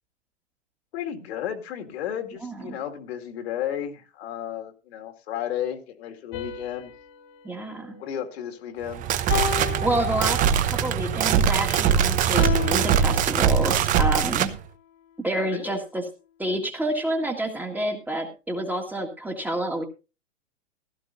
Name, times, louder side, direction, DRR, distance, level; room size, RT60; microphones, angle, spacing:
voice 1, 0.9-6.9 8.0-9.0 15.5-15.8, left 10 dB, 55° left, 2.2 m, -33 dB
sound 1, 6.3-8.7 9.3-10.8 12.3-14.0, left 10 dB, 35° left, 1.9 m, -34 dB
voice 2, 7.4-7.9 9.8-10.4 10.7-14.5 15.2-16.0 16.4-19.8, right 1 dB, 5° right, 1.8 m, -28 dB
sound 2, 8.9-14.5, right 8 dB, 20° right, 0.9 m, -22 dB
16.0 x 13.5 x 2.6 m
hypercardioid pair, 130°, 38 cm